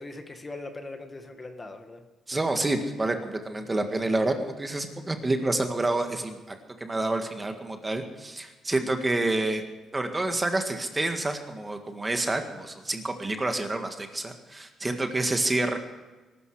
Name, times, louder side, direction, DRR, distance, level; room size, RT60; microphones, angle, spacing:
voice 1, 0.0-2.0, left 2 dB, 20° left, 6 dB, 1.7 m, -40 dB
voice 2, 2.3-9.6 9.9-15.8, right 2 dB, 15° right, 5 dB, 1.8 m, -28 dB
21.0 x 12.5 x 4.9 m, 1.2 s
cardioid pair, 125°, 0 cm